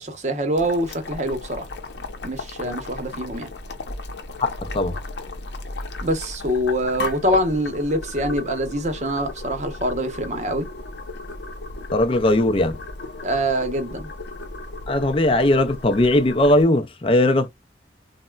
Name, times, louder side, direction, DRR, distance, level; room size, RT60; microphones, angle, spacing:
voice 1, 0.0-1.7 2.2-3.5 6.0-10.7 13.2-14.1, equal, 40° right, 0.8 m, -24 dB
Boiling, 0.6-16.6, left 2 dB, 75° left, 0.6 m, -35 dB
voice 2, 4.4-4.9 11.9-12.8 14.9-17.5, left 1 dB, 30° left, 0.4 m, -19 dB
4.0 x 2.1 x 2.2 m
head